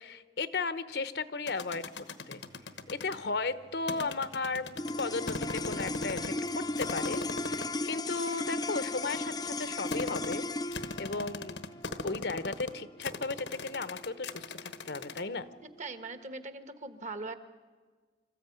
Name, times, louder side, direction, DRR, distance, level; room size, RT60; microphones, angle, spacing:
voice 1, 0.0-1.9 2.3-2.4 2.9-4.7 5.0-11.6 12.0-15.5, left 3 dB, 60° left, 14 dB, 0.9 m, -35 dB
sound 1, 1.5-3.2 3.9-6.5 6.8-7.8 8.4-15.2, left 3 dB, 80° left, 1.3 m, -39 dB
sound 2, 2.3-7.7, right 2 dB, 90° right, 2.0 m, -60 dB
sound 3, 4.8-15.2, left 2 dB, 20° left, 0.7 m, -36 dB
voice 2, 15.8-17.3, right 3 dB, 40° right, 10 dB, 1.4 m, -40 dB
26.0 x 14.0 x 9.4 m, 1.4 s
head